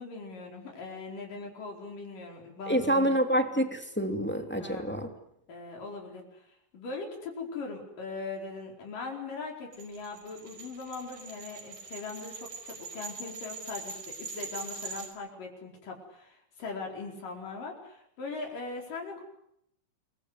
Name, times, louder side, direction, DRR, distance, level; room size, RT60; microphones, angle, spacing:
voice 1, 0.0-3.1 4.6-5.1 5.5-6.4 6.7-19.2, left 3 dB, 70° left, 1 dB, 6.2 m, -40 dB
voice 2, 2.7-5.1, right 1 dB, 5° left, 5 dB, 2.2 m, -27 dB
sound 1, 9.7-15.1, right 4 dB, 90° right, 6.9 m, -42 dB
29.0 x 23.0 x 8.2 m, 0.75 s
omnidirectional pair, 4.0 m